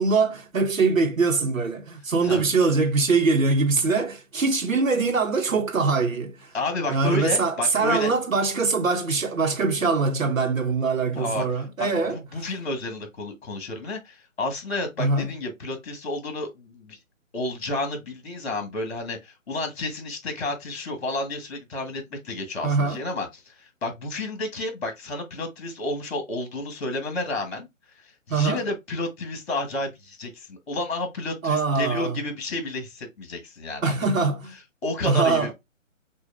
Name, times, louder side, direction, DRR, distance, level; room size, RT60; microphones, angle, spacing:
voice 1, 0.0-6.5 6.9-12.2 15.0-15.3 22.6-23.0 28.3-28.6 31.4-32.2 33.8-34.5 35.0-35.5, right 4 dB, 80° right, 1.1 m, -23 dB
voice 2, 6.5-8.1 11.1-11.4 11.8-17.0 17.3-27.7 28.3-34.2 34.8-35.5, left 2 dB, 50° left, 1.7 m, -31 dB
6.2 x 2.5 x 2.5 m
figure-of-eight pair, 145°, 40 cm